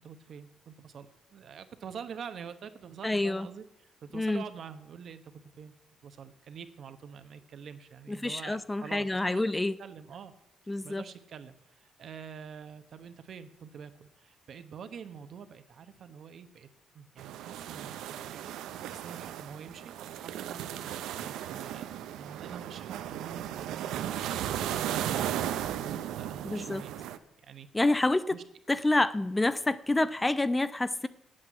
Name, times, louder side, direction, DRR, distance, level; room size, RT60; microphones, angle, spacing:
voice 1, 0.0-5.7 6.0-10.3 10.8-16.7 16.9-26.9 27.4-27.7 28.3-28.4, right 7 dB, 60° right, 10 dB, 1.0 m, -46 dB
voice 2, 3.0-3.5 4.1-4.4 8.1-9.7 10.7-11.0 26.4-26.8 27.7-28.4 28.7-31.1, left 2 dB, 15° left, 15 dB, 0.4 m, -28 dB
sound 1, 17.2-27.2, right 11 dB, 90° right, 0.6 m, -36 dB
8.7 x 7.7 x 7.6 m, 0.83 s
cardioid pair, 90°, 0 cm